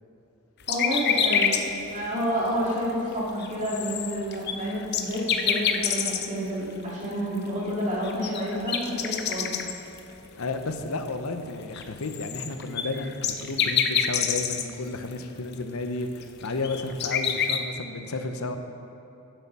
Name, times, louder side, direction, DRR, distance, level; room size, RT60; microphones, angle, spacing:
sound 1, 0.7-1.6 2.0-2.1 2.7-2.8 3.1-3.2 3.4-6.4 7.7-7.8 8.0-10.0 10.4-10.5 11.7-14.7 15.1-15.2 15.5-15.6 16.2-17.6, left 8 dB, 45° left, 0.6 m, -26 dB
voice 1, 0.7-1.6 1.9-9.5, equal, 35° right, -6 dB, 2.6 m, -29 dB
voice 2, 10.3-18.6, left 3 dB, 75° left, 7 dB, 0.8 m, -32 dB
12.0 x 7.7 x 5.5 m, 2.9 s
head